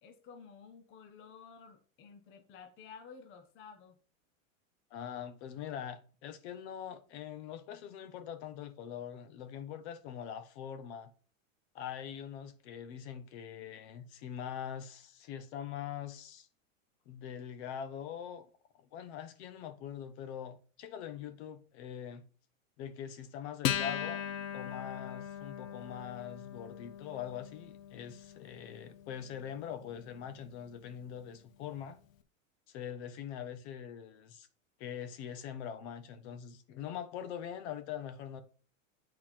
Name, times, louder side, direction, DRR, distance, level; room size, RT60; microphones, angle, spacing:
voice 1, 0.0-4.0, left 6 dB, 30° left, 0.9 m, -53 dB
voice 2, 4.9-11.1 11.7-16.5 17.1-18.5 18.8-22.3 22.8-24.3 24.5-32.0 32.7-34.5 34.8-38.4, left 9 dB, 55° left, 1.3 m, -43 dB
Acoustic guitar, 23.6-30.5, left 10 dB, 80° left, 1.0 m, -39 dB
8.6 x 4.3 x 4.4 m
supercardioid pair, 135°, 40 cm